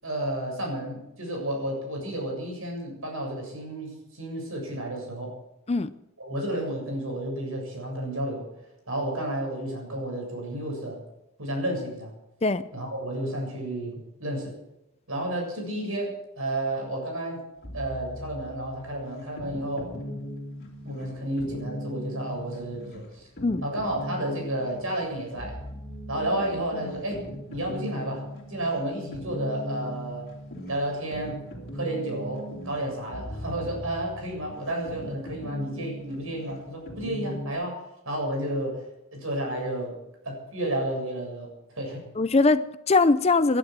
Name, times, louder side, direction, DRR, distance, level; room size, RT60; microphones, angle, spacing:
voice 1, 0.0-5.3 6.2-8.4 8.9-11.0 11.4-12.1 12.7-14.6 15.1-17.4 17.7-19.9 20.8-23.3 23.6-25.6 26.1-27.2 27.5-30.3 30.7-31.4 31.7-38.8 39.1-40.0 40.2-42.1, right 1 dB, 65° right, 1 dB, 7.4 m, -31 dB
sound 1, 17.6-37.5, equal, 45° left, 3.0 m, -39 dB
voice 2, 42.2-43.6, left 3 dB, 25° left, 13 dB, 0.5 m, -21 dB
20.0 x 11.5 x 6.2 m, 0.87 s
head